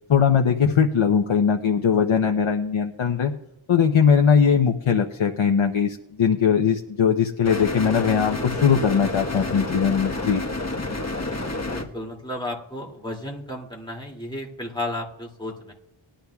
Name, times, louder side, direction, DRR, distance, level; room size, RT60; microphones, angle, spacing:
voice 1, 0.1-3.3 3.7-10.4, left 7 dB, 70° left, 3 dB, 0.8 m, -20 dB
sound 1, 7.4-11.8, left 2 dB, 30° left, 1.2 m, -29 dB
voice 2, 11.1-15.7, left 1 dB, 10° left, -2 dB, 2.5 m, -34 dB
20.0 x 11.5 x 2.3 m, 0.84 s
wide cardioid pair, 55°, 49 cm